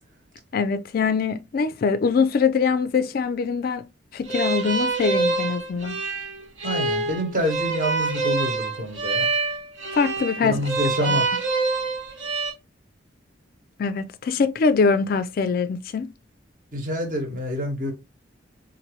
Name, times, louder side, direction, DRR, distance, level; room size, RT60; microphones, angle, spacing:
voice 1, 0.5-3.9 4.1-6.0 9.9-10.6 11.0-11.2 13.8-16.1, left 5 dB, 50° left, 0.3 m, -23 dB
sound 1, 4.3-12.5, right 3 dB, 65° right, 1.1 m, -26 dB
voice 2, 6.6-9.3 10.4-11.3 16.7-17.9, equal, 45° right, 1.2 m, -27 dB
4.2 x 2.6 x 3.0 m
head